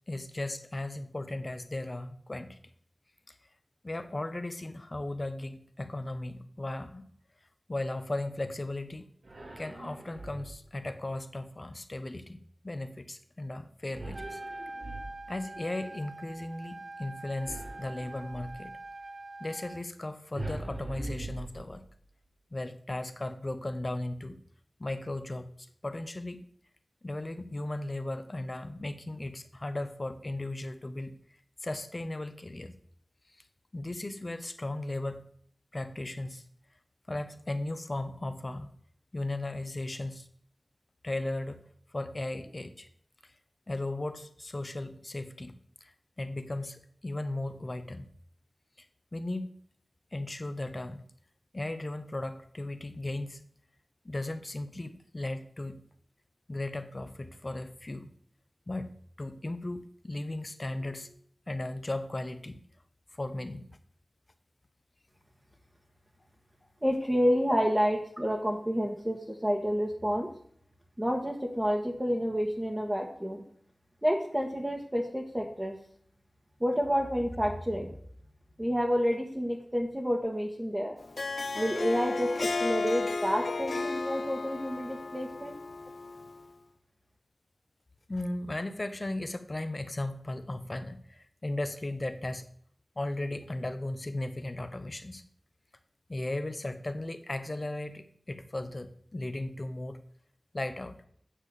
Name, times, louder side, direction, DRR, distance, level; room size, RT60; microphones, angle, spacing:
voice 1, 0.0-2.6 3.3-3.4 3.8-7.0 7.7-9.1 9.6-14.4 15.3-18.7 19.4-21.8 22.5-24.4 24.8-25.5 25.8-26.4 27.0-31.2 31.6-32.7 33.7-35.3 35.7-36.4 37.1-38.7 39.1-40.3 41.0-41.6 41.9-42.9 43.7-45.5 45.8-48.0 48.8-48.9 49.1-49.5 50.1-51.1 51.5-53.4 54.0-55.8 56.5-58.1 58.7-58.9 59.2-61.2 61.5-62.6 63.1-63.7 88.1-92.5 93.0-95.2 96.1-100.0 100.5-101.0, left 2 dB, 40° left, 10 dB, 1.1 m, -36 dB
sound 1, 9.2-10.8 13.9-15.5 17.4-18.6 20.3-22.0, right 2 dB, 80° right, 2.2 m, -41 dB
Trumpet, 14.0-19.8, right 2 dB, 55° right, 1.1 m, -44 dB
voice 2, 66.8-70.3 71.0-73.4 74.0-75.8 76.6-77.9 78.6-81.0 81.5-85.6, equal, 15° right, -2 dB, 1.6 m, -29 dB
Harp, 81.0-86.4, left 3 dB, 90° left, 0.7 m, -34 dB
9.1 x 7.0 x 6.7 m, 0.62 s
wide cardioid pair, 60°, 0 cm